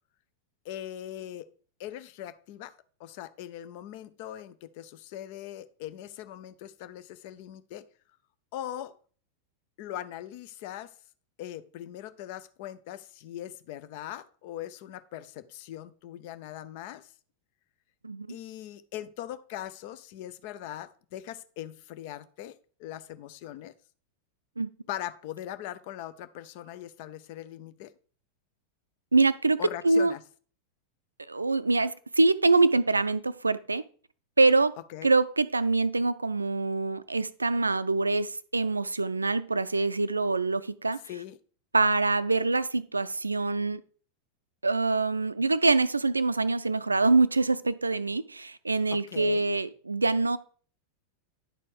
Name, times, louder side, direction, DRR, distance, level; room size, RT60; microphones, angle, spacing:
voice 1, 0.6-1.5 1.8-7.8 8.5-8.9 9.8-10.9 11.4-17.1 18.3-22.5 22.8-23.7 24.9-27.9 29.6-30.2 34.9-35.1 41.1-41.4 48.9-49.5, left 12 dB, 50° left, 0.6 m, -40 dB
voice 2, 18.0-18.4 24.6-24.7 29.1-30.1 31.3-33.8 34.4-34.7 35.0-41.0 41.7-43.8 44.6-50.4, right 3 dB, 80° right, 0.4 m, -25 dB
10.5 x 4.3 x 4.6 m
figure-of-eight pair, 90°, 0 cm